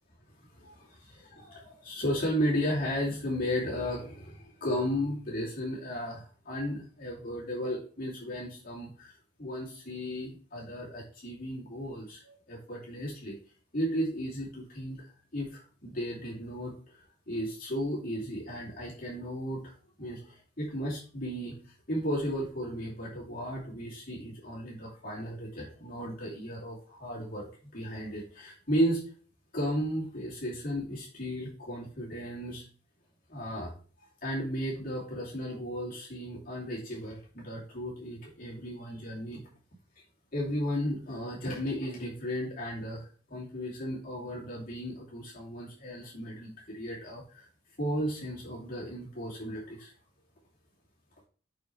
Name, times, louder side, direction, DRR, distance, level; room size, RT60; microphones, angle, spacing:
voice 1, 0.4-9.1 9.4-13.4 13.7-19.7 20.0-27.5 27.7-29.0 29.5-32.6 33.3-33.7 34.2-39.4 40.3-47.5 47.8-49.9, equal, 40° left, -6 dB, 2.7 m, -35 dB
6.7 x 5.9 x 3.3 m, 0.41 s
head